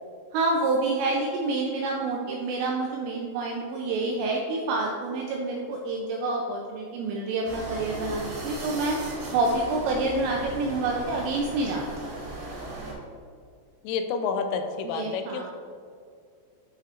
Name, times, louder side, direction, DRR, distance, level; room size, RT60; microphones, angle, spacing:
voice 1, 0.3-9.0 9.3-12.1 14.8-15.5, right 2 dB, 85° right, 0 dB, 2.5 m, -28 dB
sound 1, 7.4-12.9, right 2 dB, 60° right, 3.6 m, -37 dB
voice 2, 13.8-15.5, left 5 dB, 85° left, 7 dB, 3.1 m, -29 dB
11.0 x 5.5 x 2.5 m, 2.2 s
omnidirectional pair, 5.7 m